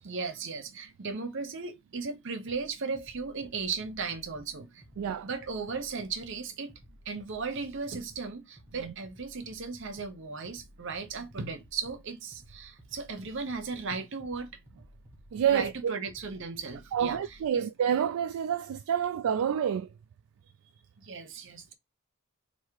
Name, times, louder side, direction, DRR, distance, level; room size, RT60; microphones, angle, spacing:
voice 1, 0.0-6.7 7.1-14.5 15.5-17.7 21.0-21.7, right 4 dB, 55° right, 0.8 m, -36 dB
sound 1, 2.5-17.5, equal, 10° right, 1.2 m, -56 dB
voice 2, 5.0-5.3 8.8-8.9 15.3-16.0 16.9-19.9, right 8 dB, 75° right, 0.3 m, -28 dB
3.4 x 2.7 x 4.7 m
head